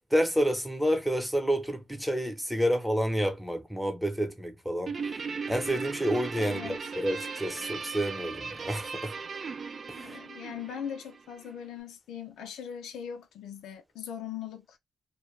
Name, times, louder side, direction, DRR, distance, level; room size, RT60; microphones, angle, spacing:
voice 1, 0.1-5.2 5.5-9.1 9.9-10.2, equal, ahead, 0.8 m, -29 dB
Guitar, 4.9-11.5, right 5 dB, 45° right, 0.4 m, -38 dB
voice 2, 6.4-6.8 10.0-14.8, left 8 dB, 90° left, 0.5 m, -40 dB
2.3 x 2.2 x 3.1 m
cardioid pair, 85°, 0 cm